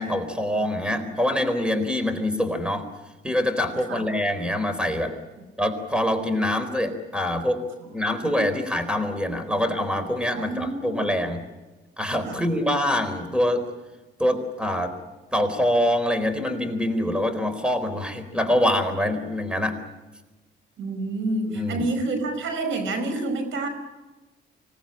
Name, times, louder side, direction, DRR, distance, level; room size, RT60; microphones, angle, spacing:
voice 1, 0.0-2.8 3.2-5.1 5.6-7.6 7.9-11.4 12.0-13.7 14.2-14.9 15.3-19.8 21.5-21.8, left 1 dB, 5° right, 10 dB, 4.1 m, -25 dB
voice 2, 0.6-1.1 3.9-4.0 9.5-9.6 10.3-11.1 12.3-12.4 20.8-23.7, right 2 dB, 80° right, 9 dB, 5.2 m, -29 dB
26.0 x 19.0 x 8.9 m, 1.1 s
cardioid pair, 90°, 20 cm